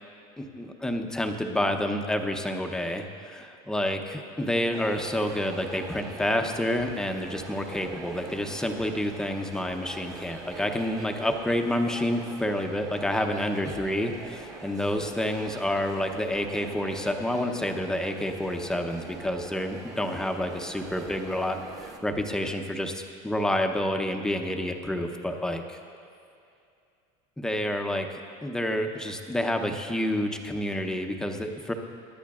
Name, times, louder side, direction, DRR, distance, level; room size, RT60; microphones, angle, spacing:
voice 1, 0.4-25.8 27.4-31.7, left 1 dB, 5° left, 4 dB, 0.6 m, -29 dB
sound 1, 4.7-22.0, right 3 dB, 20° right, 1.0 m, -43 dB
24.5 x 11.5 x 2.4 m, 2.5 s
cardioid pair, 160°, 15 cm